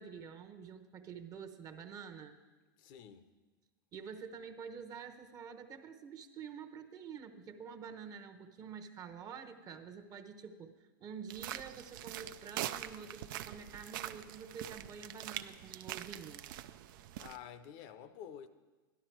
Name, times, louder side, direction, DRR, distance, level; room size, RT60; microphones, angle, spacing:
voice 1, 0.0-2.4 3.9-16.4, right 6 dB, 30° right, 7 dB, 0.9 m, -48 dB
voice 2, 2.8-3.2 17.2-18.5, left 9 dB, 50° left, 12 dB, 0.7 m, -49 dB
sound 1, 11.3-17.4, right 12 dB, 65° right, 0.5 m, -44 dB
12.0 x 11.5 x 4.6 m, 1.2 s
hypercardioid pair, 120°, 12 cm